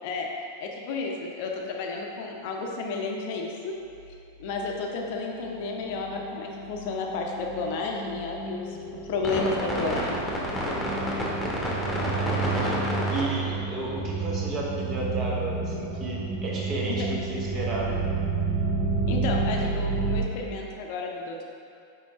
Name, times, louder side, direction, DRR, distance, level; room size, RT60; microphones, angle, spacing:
voice 1, 0.6-3.7 4.4-8.8 9.0-10.1 19.1-21.4, left 3 dB, 50° left, 0 dB, 0.6 m, -32 dB
sound 1, 4.0-4.1 4.4-4.8 5.1-20.2, right 3 dB, 5° left, 1.1 m, -29 dB
voice 2, 12.0-18.0, right 1 dB, 30° right, -3 dB, 1.0 m, -33 dB
5.9 x 4.6 x 3.5 m, 2.6 s
figure-of-eight pair, 90°, 0 cm